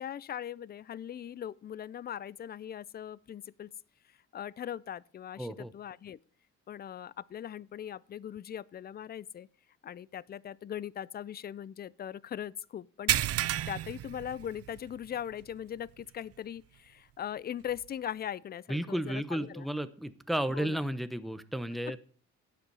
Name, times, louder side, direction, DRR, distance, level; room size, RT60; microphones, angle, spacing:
voice 1, 0.0-3.7 4.3-6.2 6.7-9.5 9.8-13.2 13.7-19.7 20.5-20.8, left 10 dB, 35° left, 0.4 m, -40 dB
voice 2, 5.4-5.7 18.7-22.0, right 1 dB, ahead, 0.8 m, -33 dB
sound 1, 13.1-15.0 15.3-15.5 16.0-16.1 17.8-17.9, right 12 dB, 55° right, 0.5 m, -31 dB
11.5 x 8.1 x 5.5 m
cardioid pair, 90°, 30 cm